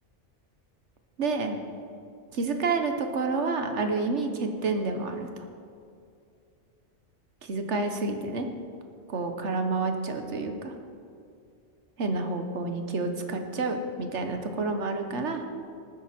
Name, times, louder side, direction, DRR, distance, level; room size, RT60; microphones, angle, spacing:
voice 1, 1.2-1.6 2.3-5.4 7.4-8.5 9.1-10.7 12.0-15.4, right 3 dB, 75° right, 6 dB, 1.4 m, -29 dB
19.5 x 9.2 x 4.4 m, 2.4 s
omnidirectional pair, 1.2 m